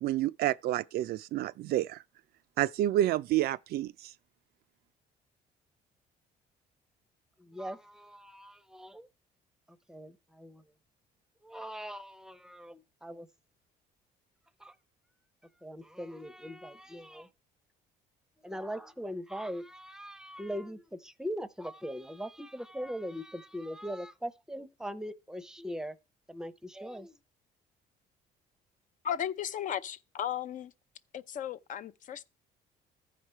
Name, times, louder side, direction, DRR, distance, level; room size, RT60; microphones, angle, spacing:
voice 1, 0.0-2.0 2.6-4.1, right 13 dB, 65° right, 0.4 m, -29 dB
voice 2, 7.4-9.1 9.7-10.6 11.4-13.3 14.6-14.8 15.6-17.3 18.4-26.0 26.3-27.2, equal, 5° right, 0.6 m, -41 dB
voice 3, 29.0-30.7 31.1-32.2, left 9 dB, 50° left, 0.5 m, -35 dB
14.0 x 5.0 x 4.4 m
cardioid pair, 110°, 17 cm